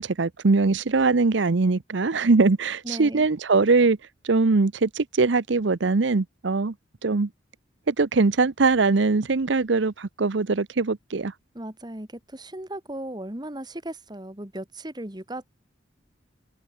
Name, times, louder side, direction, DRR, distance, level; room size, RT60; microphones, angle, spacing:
voice 1, 0.0-4.0 4.2-6.7 7.0-7.3 7.9-11.3, right 3 dB, 70° right, 0.7 m, -21 dB
voice 2, 2.8-3.3 11.5-15.5, right 1 dB, 20° right, 2.1 m, -36 dB
open air
head